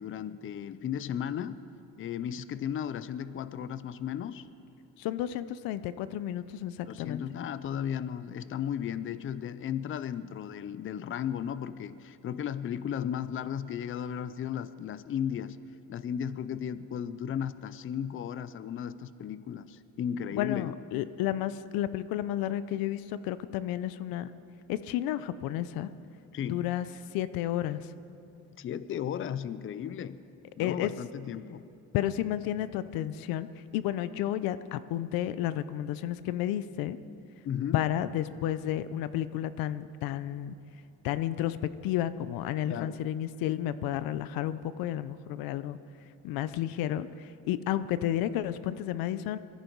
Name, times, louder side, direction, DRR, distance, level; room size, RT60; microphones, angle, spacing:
voice 1, 0.0-1.6 2.0-4.5 6.9-15.6 15.9-20.7 26.3-26.7 28.6-30.2 30.6-31.7 37.4-37.8 42.7-43.0, left 9 dB, 35° left, 15 dB, 0.5 m, -35 dB
voice 2, 5.0-7.2 20.3-24.3 24.7-25.9 26.5-26.9 27.1-27.9 30.6-30.9 31.9-33.5 33.7-37.0 37.7-40.5 41.0-41.6 41.8-45.8 46.2-49.4, left 12 dB, 90° left, 14 dB, 0.7 m, -31 dB
22.0 x 14.5 x 4.6 m, 2.7 s
cardioid pair, 120°, 34 cm